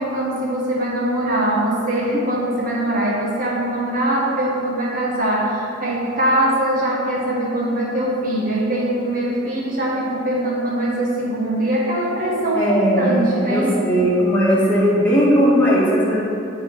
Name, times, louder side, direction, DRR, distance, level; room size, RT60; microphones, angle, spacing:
voice 1, 0.0-13.8, right 1 dB, 45° right, -5 dB, 1.1 m, -22 dB
voice 2, 12.5-16.1, equal, 10° left, -9 dB, 1.5 m, -17 dB
9.1 x 3.9 x 4.5 m, 2.8 s
head